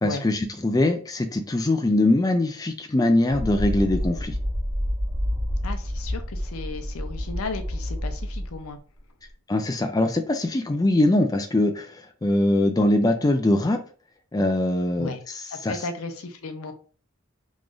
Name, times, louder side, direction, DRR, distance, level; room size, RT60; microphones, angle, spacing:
voice 1, 0.0-4.4 9.5-13.8 14.3-15.1 15.6-15.8, left 1 dB, 15° left, 5 dB, 0.4 m, -22 dB
sound 1, 3.3-8.7, equal, 5° right, 0.8 m, -28 dB
voice 2, 5.6-8.8 15.0-15.2 15.5-16.7, left 3 dB, 90° left, 7 dB, 0.6 m, -35 dB
3.1 x 2.5 x 3.7 m, 0.39 s
head